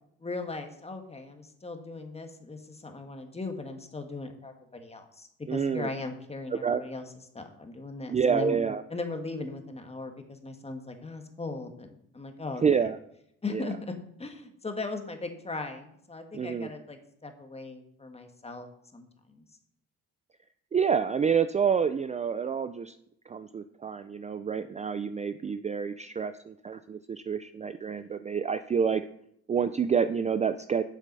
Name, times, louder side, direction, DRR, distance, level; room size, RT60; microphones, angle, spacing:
voice 1, 0.2-7.0 7.3-8.6 8.9-12.9 13.4-19.4, left 3 dB, 20° left, 5 dB, 1.5 m, -38 dB
voice 2, 5.5-5.9 6.5-6.8 8.1-8.8 12.6-13.0 13.5-13.7 16.3-16.7 20.7-23.0 23.3-29.0 29.5-30.8, right 6 dB, 25° right, 11 dB, 0.4 m, -28 dB
7.5 x 6.7 x 5.3 m, 0.72 s
cardioid pair, 90°, 30 cm